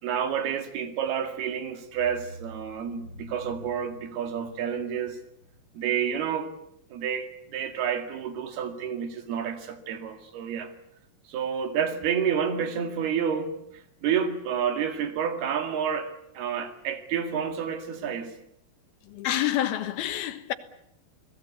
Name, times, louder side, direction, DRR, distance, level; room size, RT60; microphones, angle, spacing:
voice 1, 0.0-5.2 5.7-6.6 6.9-10.7 11.3-18.3, right 8 dB, 90° right, 4.1 m, -29 dB
sound 1, 1.3-1.5 1.9-6.5, equal, 20° left, 3.7 m, -48 dB
voice 2, 19.0-20.5, left 12 dB, 80° left, 3.3 m, -28 dB
30.0 x 19.0 x 8.4 m
omnidirectional pair, 4.4 m